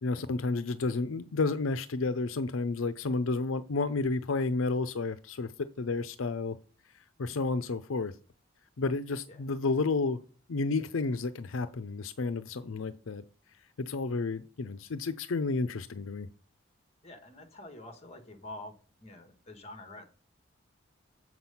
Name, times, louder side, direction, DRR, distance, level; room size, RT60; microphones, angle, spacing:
voice 1, 0.0-6.6 7.2-8.1 8.8-10.2 10.5-13.2 13.8-16.3, left 3 dB, 80° left, 0.6 m, -31 dB
voice 2, 17.0-18.7 19.0-20.0, left 1 dB, 30° left, 1.6 m, -46 dB
7.6 x 6.0 x 5.6 m
head